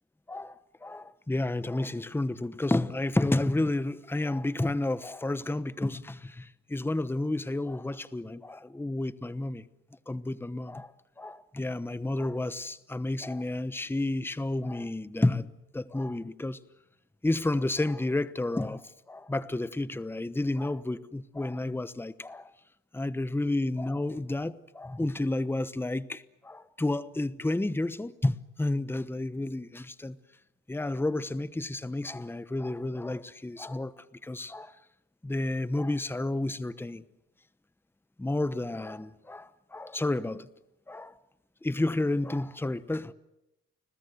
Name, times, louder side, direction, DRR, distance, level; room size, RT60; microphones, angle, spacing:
voice 1, 0.3-9.6 10.1-10.9 11.2-16.6 17.2-22.5 22.9-30.2 30.7-34.7 35.2-37.0 38.2-40.5 40.9-41.1 41.6-43.1, left 2 dB, 5° left, 1.0 m, -31 dB
30.0 x 21.0 x 8.0 m
cardioid pair, 90°, 30 cm